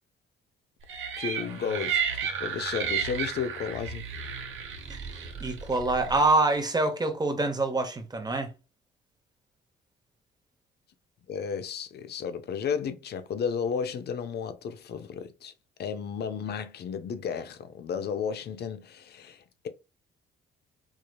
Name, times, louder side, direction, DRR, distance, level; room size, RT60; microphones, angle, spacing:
sound 1, 0.9-6.3, right 7 dB, 80° right, 0.9 m, -33 dB
voice 1, 1.2-4.1 11.3-15.5 15.8-19.7, left 6 dB, 55° left, 0.6 m, -33 dB
voice 2, 5.4-8.5, right 2 dB, 20° right, 0.9 m, -26 dB
4.8 x 2.7 x 2.3 m
cardioid pair, 90°, 20 cm